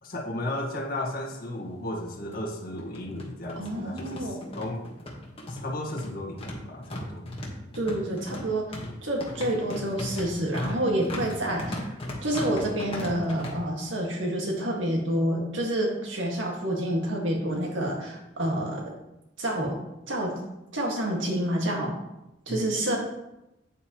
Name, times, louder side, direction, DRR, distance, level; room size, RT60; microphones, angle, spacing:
voice 1, 0.0-4.9 5.5-7.3 22.5-22.6, left 1 dB, 50° left, -1 dB, 1.7 m, -34 dB
sound 1, 1.5-1.6 1.9-2.0 2.8-13.5, left 1 dB, 30° left, 1.5 m, -37 dB
voice 2, 3.6-4.4 7.7-8.7 9.0-11.9 12.2-18.8 19.4-19.8 20.1-20.3 20.7-21.9 22.5-23.0, right 1 dB, 75° right, -1 dB, 2.0 m, -28 dB
8.9 x 8.0 x 3.1 m, 0.93 s
head